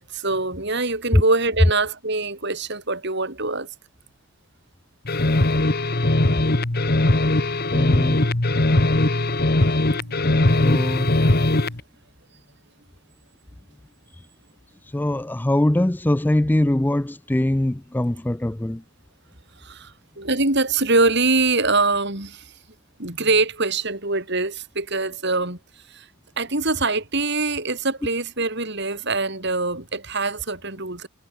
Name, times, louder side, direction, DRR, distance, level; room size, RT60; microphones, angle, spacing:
voice 1, 0.0-3.7 9.1-9.6 9.8-11.0 19.6-22.5 23.0-25.6 25.9-26.1 26.4-31.1, right 3 dB, 55° right, 4.8 m, -24 dB
sound 1, 5.0-11.8, left 2 dB, 45° left, 1.4 m, -20 dB
voice 2, 7.7-8.3 10.6-11.1 14.9-18.8, left 1 dB, 10° left, 0.3 m, -22 dB
head